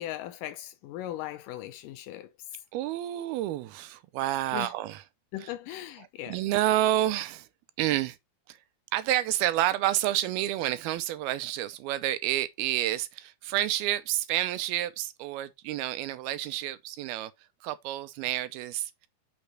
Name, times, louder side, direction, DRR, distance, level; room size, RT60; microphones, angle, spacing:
voice 1, 0.0-2.3 4.5-4.7 5.3-6.4, left 13 dB, 80° left, 1.9 m, -38 dB
voice 2, 2.7-5.0 5.4-5.5 6.2-7.5 7.8-8.2 8.5-8.6 8.9-17.3 17.6-19.1, right 14 dB, 85° right, 2.6 m, -29 dB
6.1 x 5.3 x 4.3 m
omnidirectional pair, 4.5 m